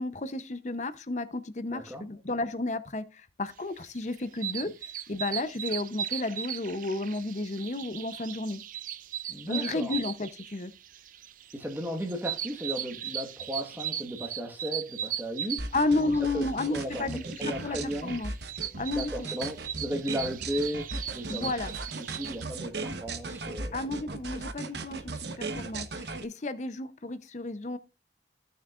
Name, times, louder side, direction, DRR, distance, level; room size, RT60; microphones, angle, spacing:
voice 1, 0.0-4.7 5.1-8.6 9.5-10.7 15.7-18.3 18.8-19.3 21.3-21.7 23.7-27.8, left 2 dB, 40° left, 0.7 m, -32 dB
voice 2, 1.7-2.0 4.6-4.7 9.3-9.9 11.5-17.1 17.4-18.1 18.9-19.5 19.8-21.5 22.0-23.8, equal, 10° right, 1.4 m, -35 dB
sound 1, 3.8-22.4, right 10 dB, 50° right, 0.5 m, -38 dB
sound 2, 15.6-26.2, right 3 dB, 70° right, 1.1 m, -37 dB
14.5 x 6.5 x 2.4 m
head